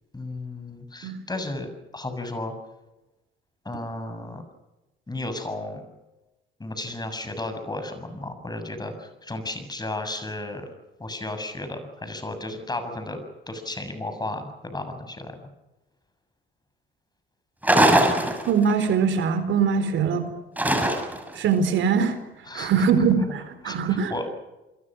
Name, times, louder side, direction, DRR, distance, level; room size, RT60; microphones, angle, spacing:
voice 1, 0.1-2.5 3.7-4.4 5.1-5.8 6.6-10.7 11.0-13.2 13.5-15.4 22.5-23.4 23.6-24.3, left 2 dB, 20° left, 8 dB, 7.0 m, -34 dB
sound 1, 17.6-18.9 20.6-21.3, right 1 dB, 10° right, 6.3 m, -20 dB
voice 2, 18.5-20.3 21.4-22.2 22.5-24.3, right 6 dB, 75° right, 10 dB, 4.3 m, -22 dB
28.5 x 22.5 x 6.3 m, 1.0 s
cardioid pair, 90°, 20 cm